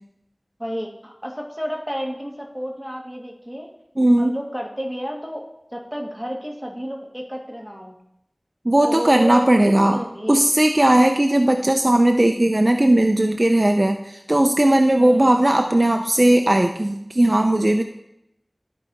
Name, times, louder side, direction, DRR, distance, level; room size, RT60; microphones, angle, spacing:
voice 1, 0.6-3.7 4.2-5.4 5.7-8.0 8.8-10.4 15.0-15.3, equal, 5° right, -1 dB, 1.6 m, -31 dB
voice 2, 4.0-4.3 8.6-10.0 10.3-17.8, right 1 dB, 45° right, 5 dB, 0.5 m, -17 dB
13.0 x 4.7 x 4.0 m, 0.80 s
wide cardioid pair, 40°, 0 cm